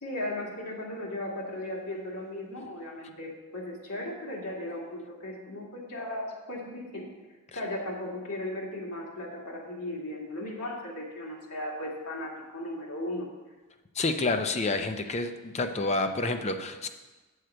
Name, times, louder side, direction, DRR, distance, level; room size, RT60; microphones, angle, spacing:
voice 1, 0.0-7.1 7.5-13.3, left 1 dB, 90° left, -3 dB, 2.0 m, -36 dB
voice 2, 14.0-16.9, left 3 dB, 30° left, 7 dB, 0.5 m, -29 dB
8.0 x 6.5 x 4.4 m, 1.2 s
head